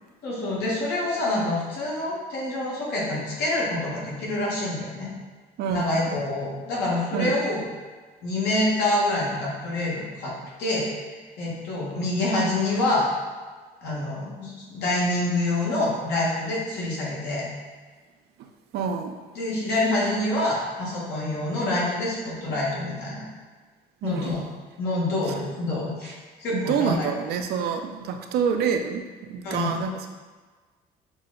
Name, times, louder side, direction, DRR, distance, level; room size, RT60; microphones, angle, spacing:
voice 1, 0.2-5.1 5.7-7.7 8.2-10.3 10.6-10.9 11.4-13.1 13.8-17.5 19.3-23.2 24.0-24.4 24.8-27.1 29.4-29.8, left 1 dB, 80° left, -5 dB, 1.5 m, -26 dB
voice 2, 5.6-6.2 7.1-7.4 18.4-19.2 24.0-24.3 26.0-26.1 26.5-30.1, right 6 dB, 75° right, 5 dB, 0.5 m, -27 dB
6.0 x 2.1 x 3.8 m, 1.4 s
cardioid pair, 110°, 17 cm